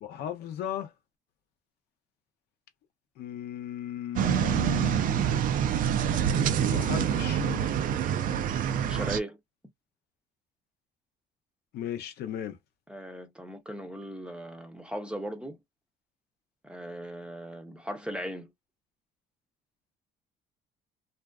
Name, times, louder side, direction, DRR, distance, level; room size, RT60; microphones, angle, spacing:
voice 1, 0.0-0.9 3.2-5.0 6.4-7.7 11.7-12.6, left 10 dB, 70° left, 0.6 m, -36 dB
sound 1, 4.2-9.2, right 9 dB, 55° right, 0.4 m, -26 dB
voice 2, 8.9-9.4 12.9-15.6 16.6-18.5, right 1 dB, 5° right, 0.7 m, -38 dB
2.5 x 2.3 x 2.2 m
cardioid pair, 110°, 17 cm